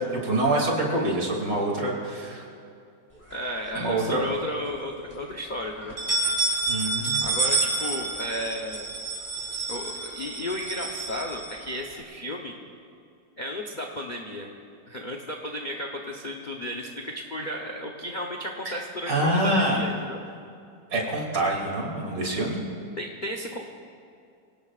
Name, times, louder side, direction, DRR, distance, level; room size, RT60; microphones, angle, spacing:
voice 1, 0.1-2.4 3.8-4.2 6.7-7.2 18.7-18.8 19.1-19.8 20.9-22.6, right 1 dB, 75° right, -2 dB, 3.5 m, -26 dB
voice 2, 3.3-6.0 7.2-8.9 9.7-12.5 13.4-14.5 14.9-20.2 23.0-23.6, left 1 dB, 35° left, 1 dB, 0.8 m, -34 dB
sound 1, 3.3-4.2 4.6-4.7 5.1-5.2 5.8-12.0, right 3 dB, 5° left, 3.4 m, -29 dB
26.0 x 17.5 x 2.5 m, 2.5 s
omnidirectional pair, 1.9 m